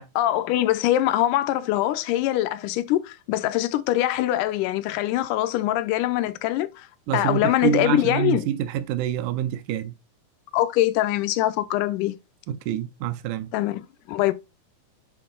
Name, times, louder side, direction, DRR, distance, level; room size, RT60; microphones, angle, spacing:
voice 1, 0.0-6.9 7.1-8.5 10.5-12.2 13.5-13.8 14.1-14.3, left 14 dB, 85° left, 2.1 m, -23 dB
voice 2, 7.1-9.9 12.5-13.5, right 10 dB, 80° right, 2.1 m, -26 dB
8.7 x 3.8 x 3.7 m
omnidirectional pair, 3.6 m